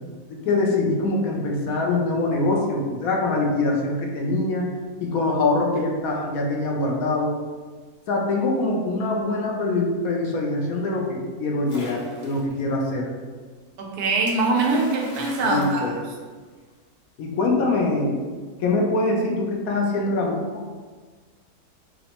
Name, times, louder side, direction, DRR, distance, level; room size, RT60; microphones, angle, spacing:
voice 1, 0.3-4.7 5.0-7.3 8.1-13.0 15.4-15.9 17.2-18.2 18.6-20.6, left 2 dB, 70° left, 0 dB, 1.0 m, -23 dB
Splash splatter, 11.7-12.6 14.3-16.7, left 1 dB, 25° left, 0.8 m, -41 dB
voice 2, 13.8-16.0, right 3 dB, 80° right, 0 dB, 1.2 m, -23 dB
5.7 x 2.0 x 2.9 m, 1.4 s
omnidirectional pair, 1.6 m